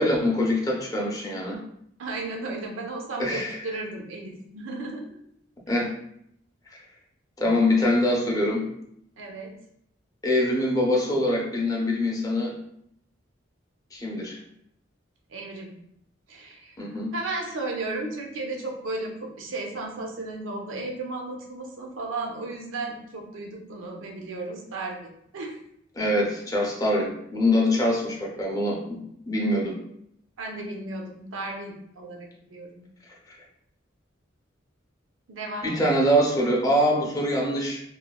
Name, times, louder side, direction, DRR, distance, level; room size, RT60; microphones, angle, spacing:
voice 1, 0.0-1.6 3.2-3.6 5.7-5.9 7.4-8.7 10.2-12.6 13.9-14.4 16.8-17.1 26.0-28.8 29.3-29.7 35.6-37.8, left 1 dB, 20° left, -2 dB, 0.5 m, -24 dB
voice 2, 2.0-5.1 9.2-9.5 15.3-15.7 16.3-25.6 30.4-32.8 35.3-35.8, right 2 dB, 85° right, 1 dB, 0.6 m, -34 dB
3.0 x 2.1 x 2.2 m, 0.73 s
head